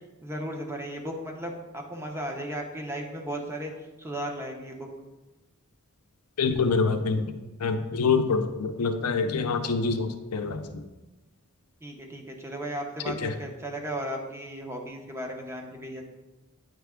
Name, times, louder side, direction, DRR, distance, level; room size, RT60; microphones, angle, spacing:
voice 1, 0.2-3.7 4.0-4.9 9.6-9.8 11.8-16.1, right 1 dB, 10° right, 1 dB, 0.7 m, -35 dB
voice 2, 6.4-10.8 13.1-13.4, left 4 dB, 90° left, 7 dB, 0.5 m, -26 dB
8.8 x 3.3 x 3.6 m, 1.1 s
head